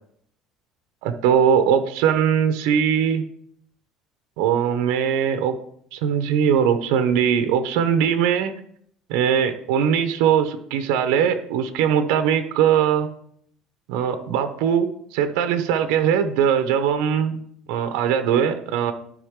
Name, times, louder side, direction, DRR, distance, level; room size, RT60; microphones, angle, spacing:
voice 1, 1.0-3.2 4.4-5.6 5.9-8.5 9.1-13.1 13.9-17.4 17.7-18.9, right 8 dB, 85° right, 9 dB, 0.8 m, -20 dB
12.0 x 5.1 x 3.6 m, 0.66 s
cardioid pair, 160°, 0 cm